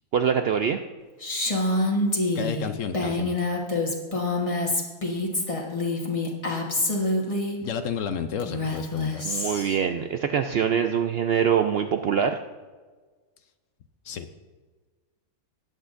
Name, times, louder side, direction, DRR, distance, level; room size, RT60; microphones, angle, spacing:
voice 1, 0.1-0.8 9.2-12.4, right 7 dB, 80° right, 6 dB, 0.5 m, -24 dB
Female speech woman speaking, 1.2-7.6 8.4-9.8, left 2 dB, 25° left, 1.3 m, -26 dB
voice 2, 2.3-3.3 7.6-9.2 14.0-14.3, left 7 dB, 65° left, 9 dB, 0.9 m, -31 dB
19.5 x 8.2 x 2.5 m, 1.4 s
omnidirectional pair, 1.6 m